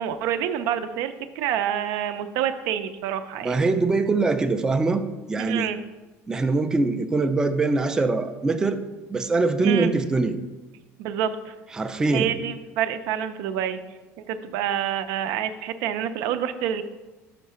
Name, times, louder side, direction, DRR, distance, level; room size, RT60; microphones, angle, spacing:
voice 1, 0.0-3.6 5.4-5.8 9.6-9.9 11.0-11.6 12.1-13.8 14.2-16.8, right 9 dB, 80° right, 10 dB, 0.5 m, -27 dB
voice 2, 3.4-5.7 6.3-8.8 9.1-10.4 11.7-12.3, right 3 dB, 10° right, 7 dB, 0.3 m, -23 dB
5.8 x 4.7 x 5.5 m, 1.1 s
cardioid pair, 150°, 6 cm